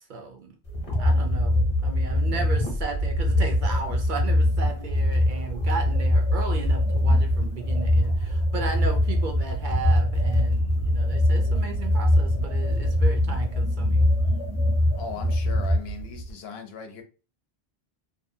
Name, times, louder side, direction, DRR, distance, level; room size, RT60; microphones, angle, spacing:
voice 1, 0.1-0.6 1.0-14.1, right 4 dB, 60° right, 0.6 m, -35 dB
sound 1, 0.7-16.3, left 1 dB, 35° left, 0.8 m, -23 dB
voice 2, 14.9-17.0, left 5 dB, 80° left, 0.9 m, -38 dB
2.7 x 2.3 x 2.6 m
omnidirectional pair, 1.0 m